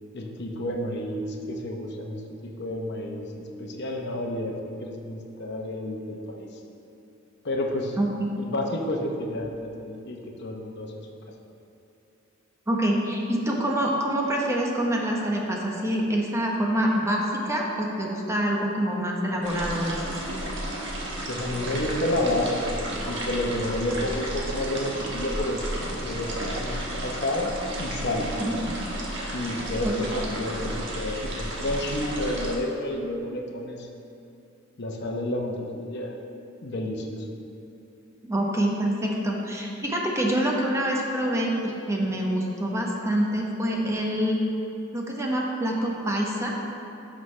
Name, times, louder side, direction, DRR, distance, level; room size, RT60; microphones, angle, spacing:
voice 1, 0.1-6.5 7.4-8.0 8.4-11.1 21.3-28.3 29.3-33.9 34.8-36.2 36.6-37.3, left 1 dB, 55° left, 1 dB, 0.8 m, -30 dB
voice 2, 8.0-8.3 12.7-20.0 28.4-28.5 29.8-29.9 38.2-44.4 44.9-46.5, right 1 dB, 15° right, -2 dB, 0.9 m, -26 dB
sound 1, 19.4-32.6, right 1 dB, 60° right, 1.4 m, -32 dB
11.0 x 6.3 x 3.2 m, 2.8 s
head